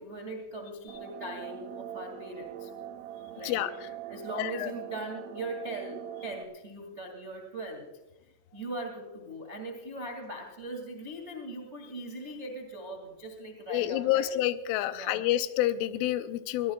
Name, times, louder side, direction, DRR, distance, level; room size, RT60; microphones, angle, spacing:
voice 1, 0.0-2.7 3.3-3.6 4.1-7.9 8.2-14.3 14.9-15.2, right 2 dB, 60° right, 2 dB, 0.7 m, -40 dB
sound 1, 0.9-6.4, right 10 dB, 80° right, 3.3 m, -42 dB
voice 2, 4.4-4.7 13.7-16.7, left 13 dB, 85° left, 11 dB, 3.2 m, -28 dB
23.0 x 17.5 x 2.3 m, 1.0 s
omnidirectional pair, 5.6 m